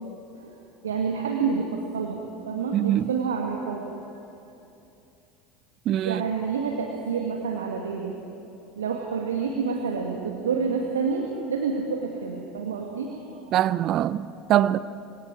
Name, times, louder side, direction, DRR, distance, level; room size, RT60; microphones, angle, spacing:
voice 1, 0.8-3.9 6.0-8.1 8.8-13.5, right 5 dB, 75° right, 1.7 m, -28 dB
voice 2, 2.7-3.1 5.9-6.2 13.5-14.8, right 12 dB, 45° right, 0.5 m, -23 dB
25.5 x 24.5 x 4.8 m
figure-of-eight pair, 70°, 0 cm